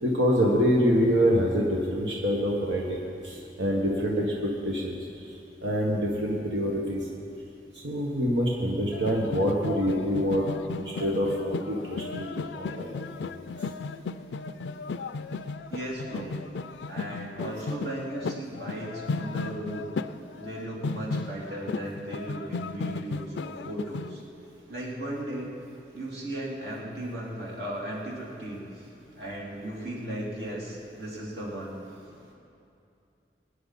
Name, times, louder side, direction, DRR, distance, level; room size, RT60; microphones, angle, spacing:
voice 1, 0.0-3.0 3.2-4.9 5.6-7.0 7.8-10.4 10.7-12.3 12.5-12.9, equal, 90° right, -3 dB, 1.6 m, -25 dB
sound 1, 8.9-24.2, left 4 dB, 85° left, 0.4 m, -35 dB
voice 2, 15.7-16.3 16.9-19.9 20.4-24.2 24.7-25.5 25.9-28.8 29.1-31.7, right 1 dB, 70° right, -4 dB, 3.0 m, -36 dB
23.5 x 10.0 x 4.2 m, 2.6 s
head